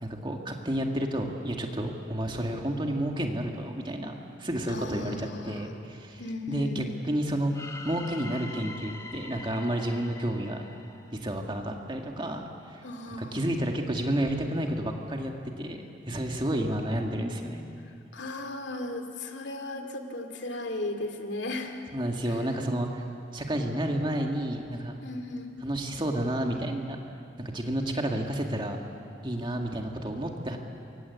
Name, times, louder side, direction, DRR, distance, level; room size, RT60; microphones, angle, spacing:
voice 1, 0.0-6.2 6.5-7.5 7.8-10.6 11.1-15.3 15.6-17.6 21.9-23.0 23.3-25.0 25.6-27.0 27.4-28.8 29.2-30.6, right 1 dB, 25° right, 2 dB, 2.2 m, -31 dB
voice 2, 4.7-5.7 6.2-6.8 12.8-13.4 18.1-21.8 22.3-22.4 25.0-25.5, left 2 dB, 70° left, 5 dB, 2.6 m, -36 dB
sound 1, 7.5-11.6, left 2 dB, 15° left, 1.7 m, -44 dB
28.0 x 24.0 x 8.4 m, 2.5 s
head